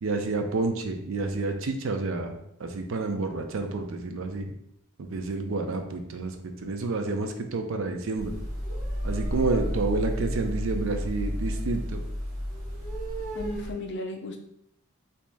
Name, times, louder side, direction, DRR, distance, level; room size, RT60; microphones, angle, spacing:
voice 1, 0.0-4.5 5.0-6.3 6.6-8.4 9.0-12.0, right 3 dB, 60° right, 5 dB, 0.4 m, -29 dB
sound 1, 8.1-13.7, equal, 40° right, 1.1 m, -31 dB
voice 2, 13.3-14.4, left 1 dB, 50° left, 3 dB, 0.5 m, -35 dB
3.0 x 2.8 x 3.4 m, 0.76 s
head